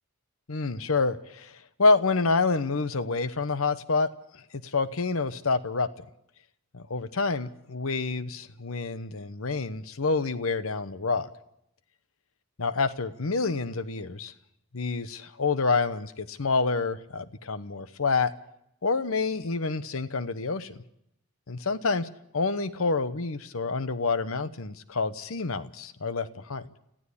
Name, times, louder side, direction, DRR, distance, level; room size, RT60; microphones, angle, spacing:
voice 1, 0.5-4.1 4.6-5.9 6.7-11.3 12.6-14.3 14.7-18.3 18.8-20.8 21.5-22.1 22.3-26.6, left 4 dB, 70° left, 13 dB, 1.0 m, -27 dB
21.0 x 15.0 x 8.5 m, 0.79 s
head